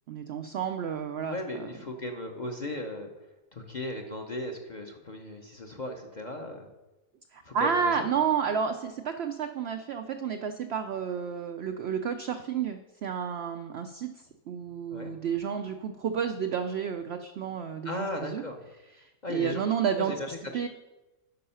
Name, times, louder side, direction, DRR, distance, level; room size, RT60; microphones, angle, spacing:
voice 1, 0.1-1.7 7.3-14.1 14.5-18.4 19.0-20.1 20.5-20.7, right 7 dB, 80° right, 7 dB, 0.5 m, -31 dB
voice 2, 1.3-3.1 3.5-6.7 7.4-8.0 14.9-15.1 17.8-18.6 19.2-19.6 20.0-20.4, left 1 dB, 40° left, 3 dB, 0.6 m, -36 dB
9.4 x 5.5 x 5.6 m, 1.1 s
omnidirectional pair, 1.7 m